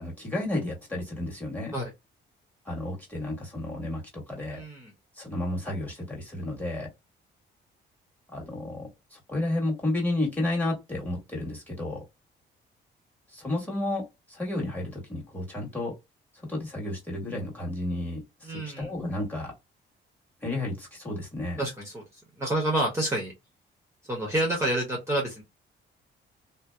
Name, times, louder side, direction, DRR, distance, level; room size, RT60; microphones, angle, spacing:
voice 1, 0.0-1.7 2.7-4.6 5.2-6.9 8.3-12.0 13.3-15.9 16.5-19.5 20.4-21.6, left 1 dB, 10° left, 1.5 m, -32 dB
voice 2, 4.5-4.9 18.4-18.9 21.6-22.0 22.4-23.3 24.1-25.4, right 1 dB, 15° right, 0.9 m, -28 dB
2.7 x 2.1 x 2.3 m
cardioid pair, 90°, 20 cm